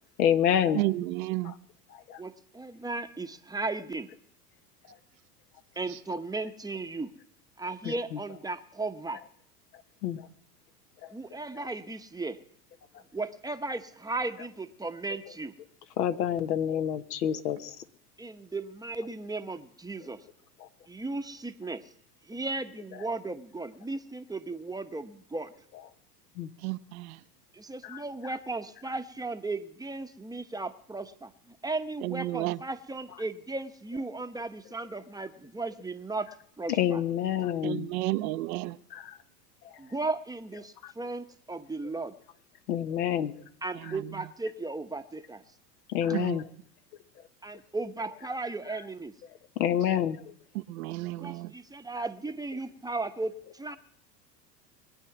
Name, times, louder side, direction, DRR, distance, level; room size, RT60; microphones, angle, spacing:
voice 1, 0.2-0.8 2.1-2.2 10.0-10.2 16.0-17.7 26.4-26.5 36.8-37.9 38.9-39.0 42.7-43.3 45.9-46.4 49.6-50.2, left 9 dB, 70° left, 1.4 m, -27 dB
voice 2, 0.7-1.5 26.6-27.2 32.0-32.6 37.6-38.8 43.8-44.1 46.1-46.4 50.5-51.5, right 18 dB, 60° right, 0.8 m, -32 dB
voice 3, 2.2-4.1 5.8-7.1 7.6-9.2 11.1-12.4 13.1-15.5 18.2-20.2 20.9-21.9 22.2-25.5 27.5-37.0 39.8-42.1 43.6-45.4 47.4-49.1 51.2-53.8, right 3 dB, 10° right, 0.9 m, -36 dB
22.5 x 8.8 x 6.0 m
hypercardioid pair, 95°, 49 cm